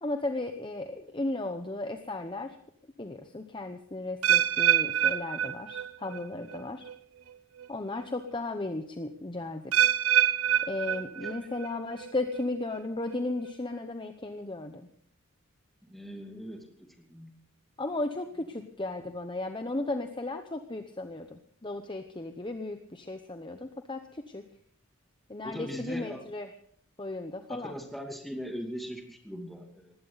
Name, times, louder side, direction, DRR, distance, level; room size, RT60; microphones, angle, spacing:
voice 1, 0.0-2.6 3.0-6.9 7.7-9.9 10.6-14.9 17.8-24.4 25.3-26.5 27.0-27.7, left 2 dB, 20° left, 7 dB, 0.8 m, -35 dB
sound 1, 4.2-6.2 6.5-6.9 7.6-7.7 9.7-11.7 12.0-12.4 13.1-13.2, right 10 dB, 85° right, 0.9 m, -26 dB
voice 2, 15.8-16.6 17.1-17.4 25.4-26.2 27.5-29.9, equal, ahead, 2 dB, 2.6 m, -40 dB
20.0 x 16.0 x 4.1 m, 0.62 s
head